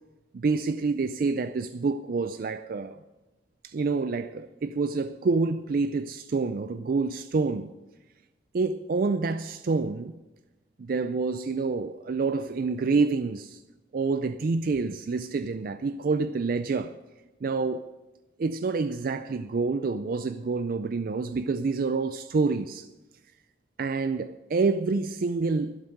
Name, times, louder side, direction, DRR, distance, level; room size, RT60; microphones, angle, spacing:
voice 1, 0.3-3.0 3.6-7.7 8.5-10.2 10.8-13.6 13.9-17.0 17.4-17.9 18.4-22.9 23.8-25.8, right 4 dB, 50° right, 0.4 m, -27 dB
12.0 x 11.5 x 6.5 m
head